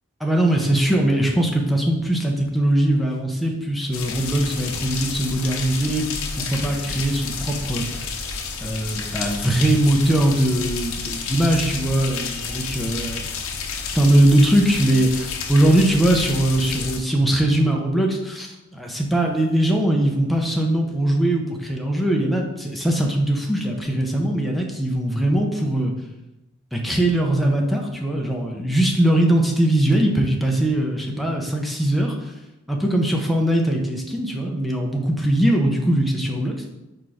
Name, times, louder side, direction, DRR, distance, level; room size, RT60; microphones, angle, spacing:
voice 1, 0.2-6.1 6.4-8.1 8.6-13.3 13.9-25.9 26.7-32.3 32.7-36.7, right 1 dB, ahead, 0 dB, 0.8 m, -21 dB
sound 1, 3.9-17.0, left 5 dB, 75° left, 0.8 m, -30 dB
4.5 x 4.4 x 4.9 m, 0.97 s
head